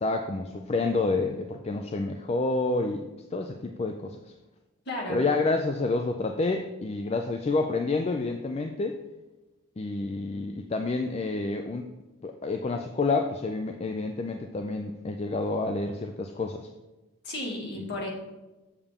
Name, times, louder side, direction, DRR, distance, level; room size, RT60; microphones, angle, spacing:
voice 1, 0.0-4.2 5.1-9.0 9.8-11.8 12.2-16.7 17.8-17.9, left 3 dB, 30° left, 5 dB, 0.3 m, -29 dB
voice 2, 4.9-5.2 17.2-18.1, left 1 dB, 50° left, -2 dB, 2.0 m, -33 dB
7.0 x 6.7 x 3.6 m, 1.1 s
head